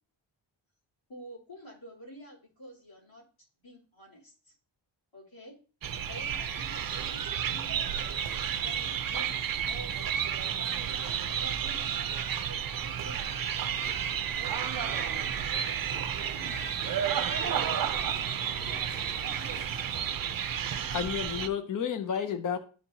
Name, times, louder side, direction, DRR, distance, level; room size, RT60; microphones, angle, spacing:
voice 1, 1.1-3.2 3.6-4.5 5.1-5.5 6.1-7.9 8.6-9.3 9.7-14.6 15.4-15.6, equal, 75° left, -6 dB, 3.3 m, -49 dB
sound 1, 5.8-21.5, right 8 dB, 50° right, 0.5 m, -31 dB
sound 2, 13.7-19.7, left 1 dB, 20° left, 1.0 m, -48 dB
voice 2, 17.7-20.5 20.8-21.2 21.9-22.4, right 1 dB, ahead, -1 dB, 2.1 m, -56 dB
voice 3, 20.9-22.6, left 8 dB, 45° left, 8 dB, 0.6 m, -31 dB
12.0 x 4.3 x 2.7 m, 0.38 s
wide cardioid pair, 150°, 46 cm